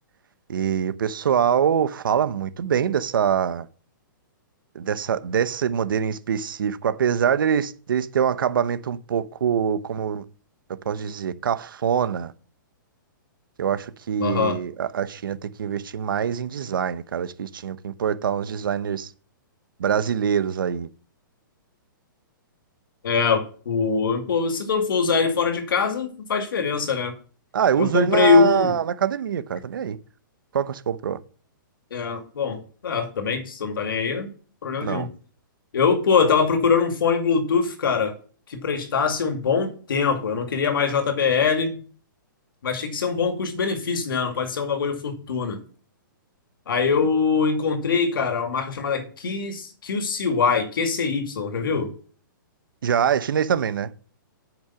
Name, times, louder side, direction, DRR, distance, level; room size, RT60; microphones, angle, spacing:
voice 1, 0.5-3.7 4.7-10.2 10.8-12.3 13.6-19.1 19.8-20.9 27.5-30.0 30.5-31.2 34.8-35.1 52.8-53.9, right 8 dB, 75° right, 0.9 m, -24 dB
voice 2, 14.2-14.6 23.0-27.1 27.8-28.7 31.9-34.3 34.6-35.1 35.7-38.1 38.5-41.8 42.6-45.6 46.7-51.9, left 5 dB, 80° left, 2.3 m, -23 dB
8.9 x 6.0 x 5.7 m
hypercardioid pair, 160°, 11 cm